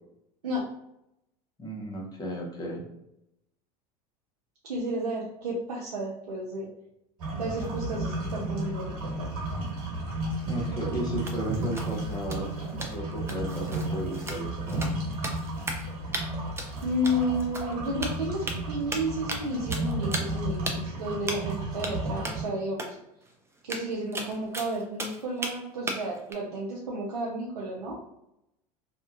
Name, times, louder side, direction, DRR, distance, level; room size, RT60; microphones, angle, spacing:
voice 1, 1.6-2.8 10.4-14.8, equal, 20° left, -2 dB, 0.9 m, -34 dB
voice 2, 4.7-6.7 7.4-9.3 16.8-23.0 23.6-28.0, equal, 90° right, -3 dB, 0.5 m, -32 dB
sound 1, 7.2-22.4, right 1 dB, 65° right, 1.2 m, -33 dB
sound 2, 11.2-15.9 16.1-16.2 16.6-17.7 18.0-18.6 18.9-19.4 19.7-20.4 20.6-20.7 21.3-21.5 21.8-21.9 22.2-22.4 22.8-22.9 23.2-23.3 23.6-25.5 25.9-26.3, right 2 dB, 15° right, 0.5 m, -36 dB
2.8 x 2.4 x 2.5 m, 0.84 s
hypercardioid pair, 80°, 20 cm